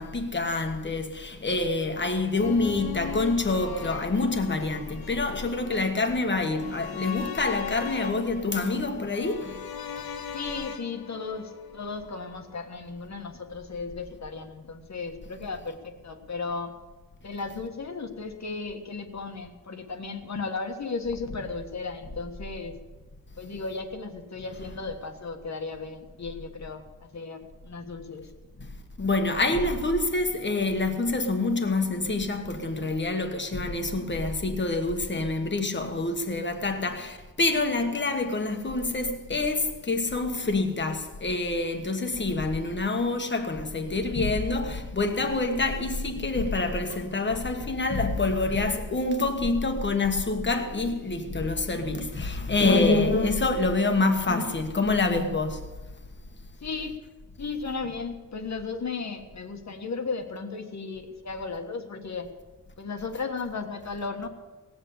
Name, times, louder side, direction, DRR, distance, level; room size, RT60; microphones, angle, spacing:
voice 1, 0.0-9.7 28.6-55.7, left 3 dB, 30° left, 1.4 m, -26 dB
sound 1, 2.4-12.5 12.8-12.9, left 7 dB, 85° left, 1.1 m, -40 dB
voice 2, 10.3-16.7 17.2-22.8 23.4-28.3 56.6-57.0 57.4-62.3 62.8-64.3, left 4 dB, 50° left, 1.5 m, -35 dB
18.0 x 8.1 x 8.3 m
wide cardioid pair, 180°, 36 cm